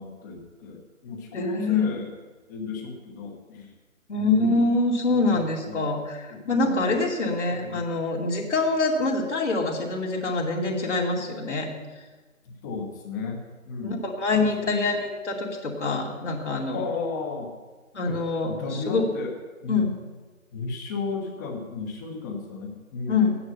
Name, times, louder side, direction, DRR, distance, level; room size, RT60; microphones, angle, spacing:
voice 1, 0.0-2.1 2.5-3.7 4.2-4.6 5.1-5.9 6.3-7.0 7.5-7.8 12.4-14.0 14.4-14.9 16.7-17.5 18.0-18.2 18.5-19.3 19.6-20.0 20.5-23.3, left 4 dB, 15° left, 2 dB, 1.2 m, -34 dB
voice 2, 1.3-1.9 4.1-11.7 13.8-16.9 17.9-19.1 19.7-19.9 23.1-23.4, left 3 dB, 55° left, -1 dB, 2.7 m, -25 dB
14.5 x 9.7 x 5.6 m, 1.3 s
figure-of-eight pair, 145°, 42 cm